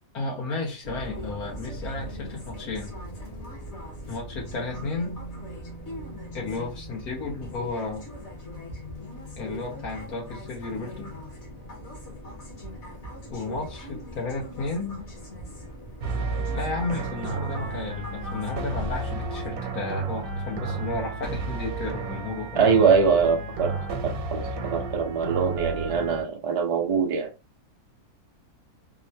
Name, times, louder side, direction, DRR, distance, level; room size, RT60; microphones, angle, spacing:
voice 1, 0.1-3.0 4.1-5.2 6.3-8.0 9.4-11.2 13.3-15.0 16.5-22.7, left 3 dB, 80° left, 1.6 m, -33 dB
sound 1, 0.8-19.5, equal, 50° left, 1.3 m, -40 dB
sound 2, 16.0-26.2, right 3 dB, 80° right, 1.1 m, -32 dB
voice 2, 22.5-23.7 24.0-27.3, right 5 dB, 60° right, 0.3 m, -23 dB
3.6 x 2.2 x 2.7 m
omnidirectional pair, 1.6 m